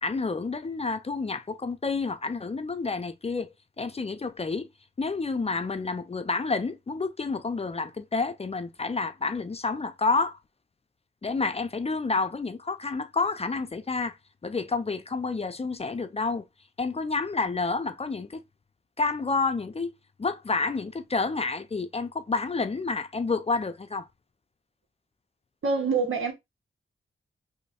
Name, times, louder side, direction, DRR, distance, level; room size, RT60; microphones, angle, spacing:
voice 1, 0.0-4.7 5.0-10.4 11.2-14.2 14.4-16.4 16.8-18.4 19.0-24.1, left 4 dB, 30° left, 0.5 m, -29 dB
voice 2, 25.6-26.3, right 4 dB, 75° right, 1.0 m, -25 dB
3.1 x 2.2 x 4.1 m
cardioid pair, 70°, 21 cm